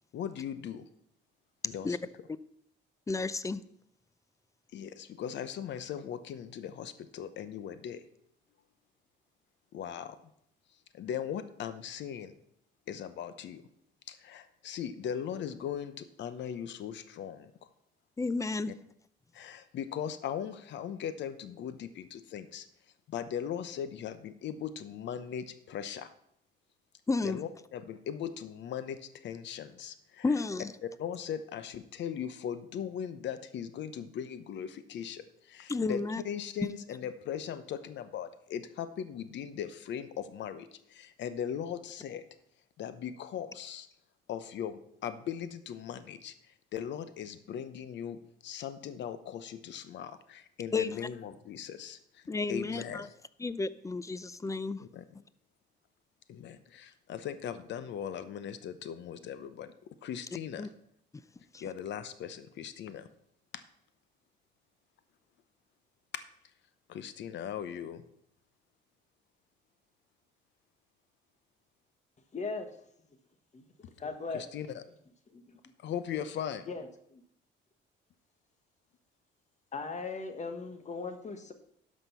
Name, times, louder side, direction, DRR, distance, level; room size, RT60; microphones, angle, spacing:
voice 1, 0.1-0.8 1.6-2.0 4.7-8.0 9.7-10.2 10.9-12.3 12.9-13.6 14.1-17.5 19.3-22.7 23.1-26.1 27.2-30.2 30.8-42.2 42.8-43.9 44.3-46.3 46.7-52.2 52.5-53.1 54.8-55.0 56.3-60.7 61.6-63.1 63.5-63.6 66.1-66.2 66.9-68.0 74.3-74.8 75.8-76.7, left 9 dB, 70° left, 0.9 m, -39 dB
voice 2, 3.1-3.6 18.2-18.7 27.1-27.4 30.2-30.7 35.7-36.2 36.6-36.7 50.7-51.1 52.3-53.1 53.4-54.8 60.6-60.7 61.5-61.6, left 3 dB, 15° left, 0.5 m, -32 dB
voice 3, 72.3-72.7 73.5-73.6 74.0-74.4 75.3-75.6 76.7-77.2 79.7-81.5, left 4 dB, 35° left, 1.4 m, -38 dB
12.5 x 5.3 x 5.6 m
cardioid pair, 95°, 20 cm